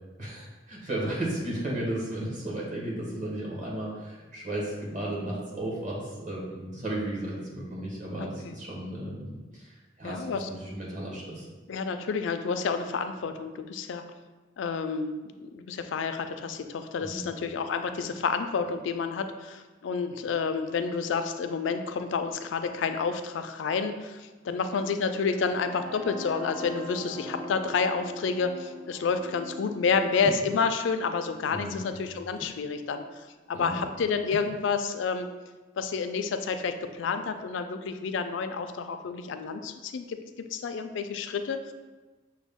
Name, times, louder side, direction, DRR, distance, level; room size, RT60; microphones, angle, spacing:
voice 1, 0.2-11.5 17.0-17.2 31.5-32.0 33.5-33.8, right 1 dB, 40° right, -4 dB, 1.1 m, -34 dB
voice 2, 8.2-8.5 10.0-10.5 11.7-14.0 14.6-33.0 33.5-35.3 35.8-40.2 40.5-41.7, left 5 dB, 70° left, 8 dB, 0.3 m, -29 dB
sound 1, 25.2-33.1, left 1 dB, 5° left, 0.5 m, -43 dB
sound 2, 30.2-30.6 31.5-32.7 34.3-34.6, equal, 85° right, 1.3 m, -39 dB
6.2 x 2.2 x 3.5 m, 1.3 s
head